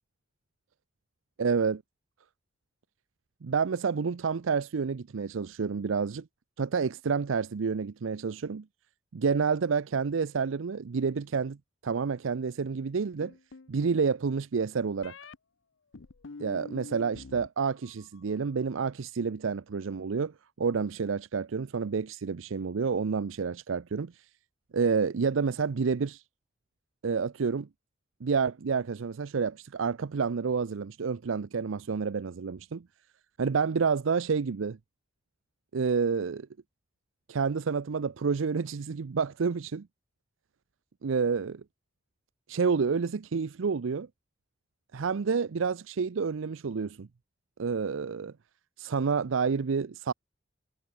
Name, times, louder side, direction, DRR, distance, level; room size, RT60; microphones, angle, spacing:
voice 1, 1.4-1.8 3.4-6.2 6.6-8.6 9.1-11.6 11.8-13.3 13.7-15.1 16.4-24.1 24.7-26.2 27.0-27.7 28.2-32.8 33.4-34.8 35.7-36.5 37.3-39.9 41.0-41.6 42.5-44.1 44.9-47.1 47.6-48.3 48.8-50.1, right 5 dB, 90° right, 0.5 m, -29 dB
sound 1, 13.2-14.0 15.0-15.4 15.9-17.5 17.8-18.3, left 3 dB, 80° left, 0.8 m, -46 dB
head